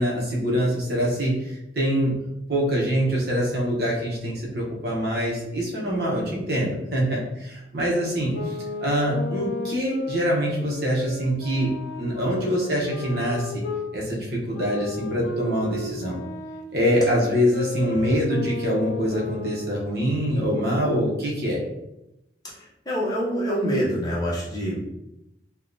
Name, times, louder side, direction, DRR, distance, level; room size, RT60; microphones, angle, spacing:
voice 1, 0.0-2.1 2.5-11.7 12.0-13.6 13.9-16.2 16.7-21.6, equal, 60° right, -3 dB, 0.7 m, -24 dB
sound 1, 8.3-13.9 14.5-20.0, left 2 dB, 65° left, 0.3 m, -34 dB
voice 2, 22.9-24.9, equal, 20° left, -6 dB, 0.7 m, -26 dB
3.4 x 2.1 x 2.5 m, 0.90 s
head